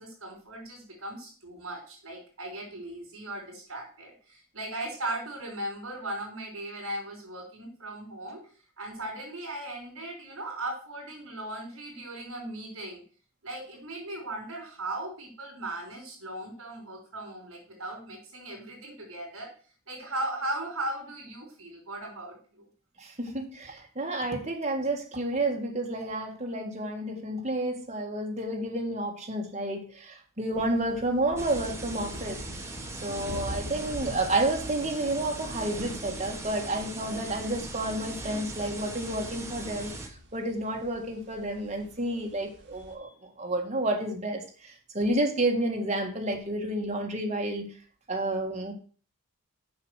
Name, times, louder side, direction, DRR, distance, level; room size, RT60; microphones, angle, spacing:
voice 1, 0.0-8.4 8.8-13.0 13.4-19.5 19.9-22.7, right 1 dB, 70° right, -3 dB, 3.6 m, -38 dB
voice 2, 23.0-32.4 33.0-39.9 40.3-43.1 43.4-44.4 44.9-47.7 48.1-48.7, right 1 dB, 30° right, 1 dB, 1.8 m, -30 dB
sound 1, 30.5-42.9, equal, 55° right, 2.0 m, -45 dB
sound 2, 31.4-40.1, right 2 dB, 10° right, 1.3 m, -39 dB
6.9 x 6.0 x 6.4 m, 0.40 s
head